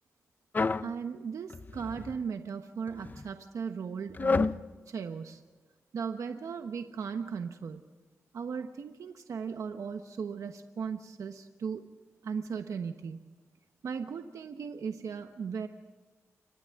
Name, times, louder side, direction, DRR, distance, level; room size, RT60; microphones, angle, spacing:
sound 1, 0.5-0.9 1.5-2.2 2.9-3.2 4.1-4.6, left 4 dB, 35° left, 0.6 m, -29 dB
voice 1, 0.8-5.4 5.9-7.8 8.3-11.9 12.2-13.2 13.8-15.7, right 6 dB, 80° right, 6 dB, 1.1 m, -37 dB
30.0 x 26.0 x 3.7 m, 1.3 s
wide cardioid pair, 110°, 5 cm